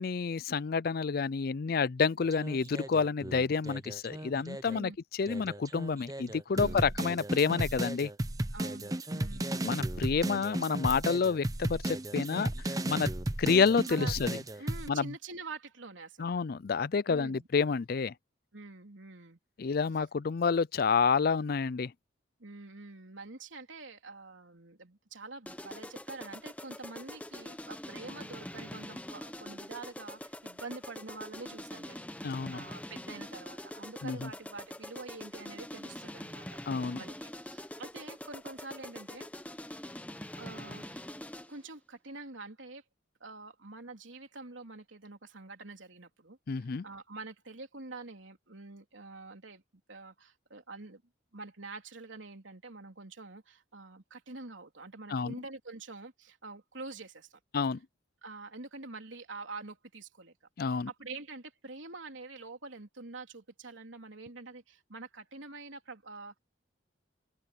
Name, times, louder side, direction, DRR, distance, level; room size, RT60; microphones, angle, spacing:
voice 1, 0.0-4.9 5.2-8.1 9.6-13.1 13.4-14.4 14.9-15.1 16.2-18.1 19.6-21.9 32.2-32.6 34.0-34.3 36.7-37.0 46.5-46.8 55.1-55.3 57.5-57.8 60.6-60.9, left 5 dB, 50° left, 0.4 m, -29 dB
sound 1, 2.2-4.8 5.3-14.9, right 1 dB, 20° right, 0.8 m, -35 dB
voice 2, 6.5-7.0 8.5-9.8 10.2-10.4 13.9-14.2 14.6-16.4 17.0-17.5 18.5-19.4 22.4-36.6 36.9-39.3 40.4-41.2 41.5-42.8 43.2-49.6 49.9-51.0 51.3-57.4 58.2-60.3 60.7-66.4, right 3 dB, 80° right, 3.4 m, -46 dB
sound 2, 25.5-41.6, left 1 dB, 10° left, 1.0 m, -44 dB
open air
head